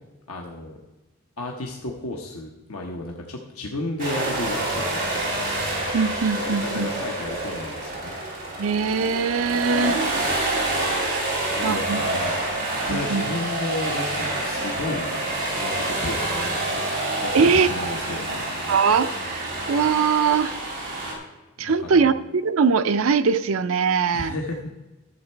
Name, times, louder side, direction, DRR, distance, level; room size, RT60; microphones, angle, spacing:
voice 1, 0.3-0.8 1.4-5.6 6.4-8.1 11.3-12.3 12.9-15.1 15.5-16.8 17.2-18.4 21.6-22.1 24.1-24.7, left 2 dB, 90° left, 1 dB, 1.1 m, -33 dB
sound 1, 4.0-21.1, right 2 dB, 40° right, 2.9 m, -27 dB
voice 2, 5.9-6.9 8.6-10.0 11.1-11.2 11.6-12.0 12.9-13.3 17.3-17.7 18.7-20.6 21.6-22.1 22.4-24.4, right 5 dB, 75° right, 11 dB, 0.5 m, -21 dB
12.5 x 7.2 x 4.5 m, 1.1 s
head